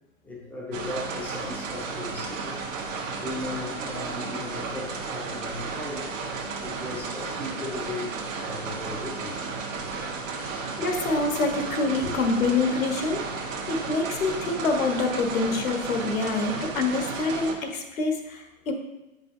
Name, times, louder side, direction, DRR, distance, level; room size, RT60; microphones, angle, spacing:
voice 1, 0.2-2.6 3.1-6.1 6.6-9.4 10.9-11.0 12.0-12.1, left 2 dB, 5° left, -3 dB, 0.7 m, -37 dB
sound 1, 0.7-17.5, right 4 dB, 65° right, 1.3 m, -33 dB
voice 2, 10.4-18.7, left 3 dB, 75° left, 4 dB, 1.3 m, -26 dB
8.0 x 5.4 x 2.7 m, 0.99 s
hypercardioid pair, 150°, 41 cm